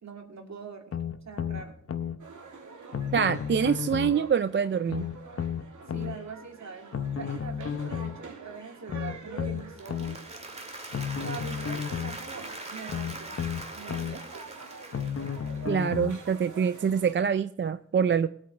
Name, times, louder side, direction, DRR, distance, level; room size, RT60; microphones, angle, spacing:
voice 1, 0.0-1.8 5.9-6.9 7.2-10.2 11.2-14.3, right 5 dB, 60° right, 3 dB, 2.5 m, -43 dB
sound 1, 0.9-2.2 2.9-4.2 4.9-6.2 6.9-8.2 8.9-10.2 10.9-12.2 12.9-14.2 14.9-16.2 16.9-17.0, left 8 dB, 50° left, 0.8 m, -32 dB
sound 2, 2.2-17.1, right 4 dB, 80° right, 2.5 m, -47 dB
voice 2, 3.1-5.0 15.7-18.3, right 7 dB, 40° right, 12 dB, 0.4 m, -25 dB
Applause, 9.6-15.8, right 2 dB, 20° right, 1.9 m, -42 dB
22.0 x 8.7 x 3.2 m, 0.70 s
wide cardioid pair, 160°, 30 cm